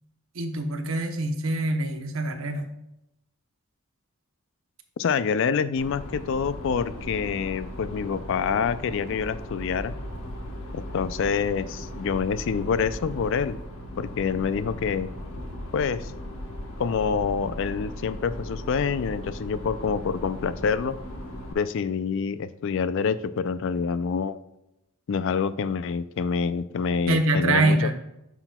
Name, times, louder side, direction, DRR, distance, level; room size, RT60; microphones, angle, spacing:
voice 1, 0.3-2.7 27.1-28.0, right 2 dB, 70° right, 6 dB, 0.9 m, -24 dB
voice 2, 5.0-9.9 10.7-13.6 14.0-15.1 15.7-16.1 16.8-21.0 21.5-24.4 25.1-28.0, left 6 dB, 60° left, 14 dB, 0.4 m, -27 dB
sound 1, 5.8-21.5, equal, 80° left, 1.2 m, -37 dB
10.0 x 6.0 x 2.2 m, 0.89 s
head